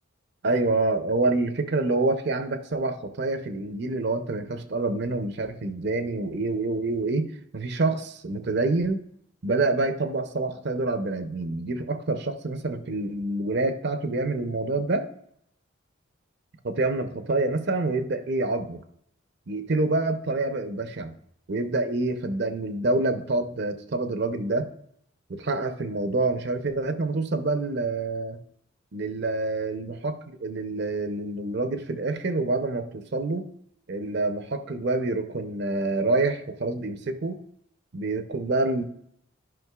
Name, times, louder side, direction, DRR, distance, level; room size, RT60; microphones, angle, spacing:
voice 1, 0.4-9.0 9.4-15.1 16.6-18.8 19.5-21.1 21.5-24.7 25.3-28.4 28.9-33.5 33.9-37.4 37.9-38.8, right 2 dB, 55° right, 8 dB, 0.6 m, -27 dB
11.0 x 5.2 x 2.3 m, 0.71 s
head